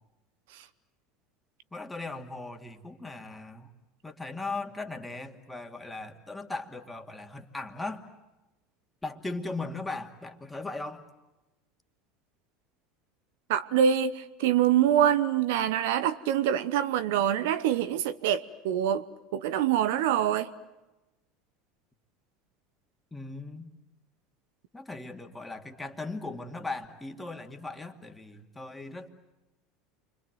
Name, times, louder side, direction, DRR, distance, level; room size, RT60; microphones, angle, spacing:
voice 1, 1.7-3.7 4.0-8.0 9.0-11.0 23.1-23.7 24.7-29.1, left 3 dB, 10° left, 2.4 m, -38 dB
voice 2, 13.5-19.1 19.3-20.5, right 9 dB, 70° right, 0.9 m, -25 dB
29.0 x 25.0 x 7.9 m
hypercardioid pair, 75°, 0 cm